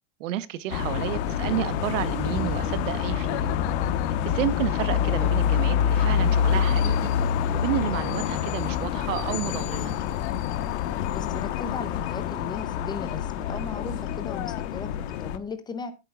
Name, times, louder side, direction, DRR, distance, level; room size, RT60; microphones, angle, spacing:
voice 1, 0.2-3.5 4.2-7.1 7.5-9.9, right 13 dB, 75° right, 1.0 m, -31 dB
sound 1, 0.7-15.4, left 8 dB, 60° left, 1.2 m, -26 dB
voice 2, 11.1-15.9, left 4 dB, 10° left, 0.6 m, -37 dB
15.0 x 8.4 x 2.3 m
supercardioid pair, 160°, 38 cm